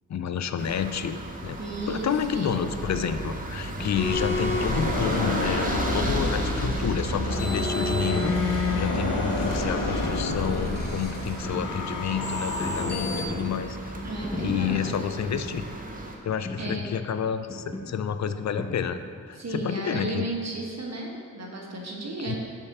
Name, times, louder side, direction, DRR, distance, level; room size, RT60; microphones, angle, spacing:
voice 1, 0.1-1.6 1.9-13.9 14.4-15.7 16.2-19.0 19.3-20.3 22.3-22.4, left 7 dB, 55° left, 10 dB, 0.5 m, -30 dB
sound 1, 0.6-16.2, right 2 dB, 25° right, 0.9 m, -34 dB
voice 2, 1.6-2.6 14.0-15.2 16.6-16.9 19.3-22.4, right 2 dB, 50° right, -1 dB, 1.3 m, -34 dB
sound 2, 3.7-19.4, left 1 dB, 15° left, 0.8 m, -38 dB
sound 3, 4.0-13.3, left 3 dB, 75° left, 1.0 m, -29 dB
5.5 x 4.7 x 5.9 m, 2.1 s
cardioid pair, 50°, 33 cm